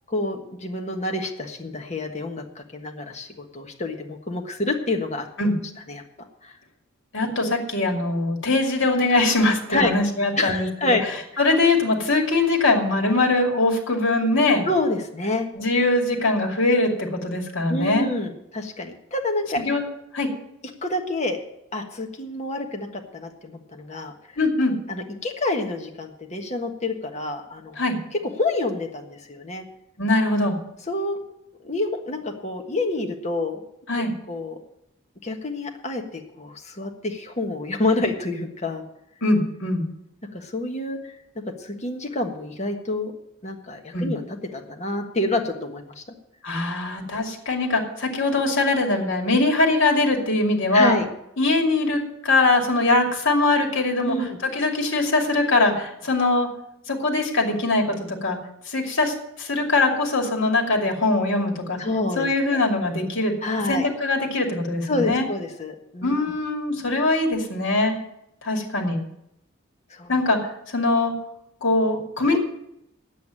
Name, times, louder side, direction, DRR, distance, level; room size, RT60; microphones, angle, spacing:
voice 1, 0.1-5.3 5.9-6.0 6.4-6.5 9.7-9.9 10.4-11.0 14.6-15.5 17.7-19.6 20.8-21.4 21.7-24.1 24.9-27.8 28.4-29.6 30.9-31.2 31.6-33.6 34.3-34.6 35.2-38.8 40.3-41.1 41.6-43.1 43.4-46.0 50.7-51.0 54.0-54.4 61.8-62.6 63.4-63.9 64.9-66.2 69.9-70.1 72.3-72.4, left 2 dB, 35° left, 3 dB, 1.5 m, -28 dB
voice 2, 7.1-11.0 11.4-14.6 15.5-18.1 19.6-19.9 20.1-20.3 24.4-24.7 27.8-28.0 30.0-30.6 33.9-34.1 39.2-39.8 43.9-44.1 46.4-51.0 51.4-54.2 54.4-56.5 56.9-58.4 58.7-61.8 62.2-63.3 63.7-65.3 66.0-68.0 68.4-69.0 70.1-70.4 70.7-71.1 71.6-72.4, left 2 dB, 60° left, 2 dB, 2.6 m, -22 dB
9.3 x 8.3 x 8.9 m, 0.80 s
head